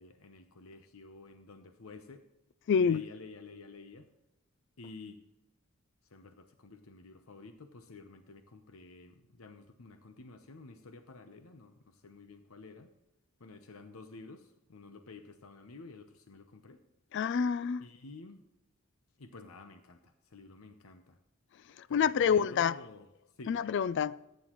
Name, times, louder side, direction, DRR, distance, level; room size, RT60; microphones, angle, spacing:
voice 1, 0.0-2.2 2.8-4.1 4.8-5.2 6.1-12.9 13.4-16.8 17.8-18.4 19.2-21.2 21.9-23.1 23.4-23.7, left 3 dB, 85° left, 0.9 m, -51 dB
voice 2, 2.7-3.0 17.1-17.8 21.9-22.8 23.5-24.2, left 7 dB, 60° left, 0.3 m, -27 dB
15.0 x 9.5 x 3.1 m
head